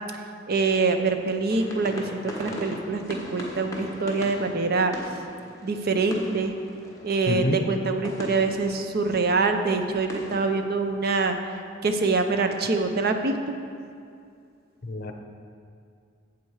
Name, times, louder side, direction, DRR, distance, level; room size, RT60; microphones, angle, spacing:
voice 1, 0.5-4.9 5.6-6.5 7.0-11.4 11.8-13.5, right 3 dB, 50° right, 6 dB, 0.6 m, -25 dB
sound 1, 1.5-10.6, left 1 dB, 15° left, 1.2 m, -40 dB
voice 2, 7.3-7.6 14.8-15.1, left 1 dB, 50° left, 5 dB, 0.8 m, -26 dB
8.7 x 7.5 x 4.7 m, 2.3 s
head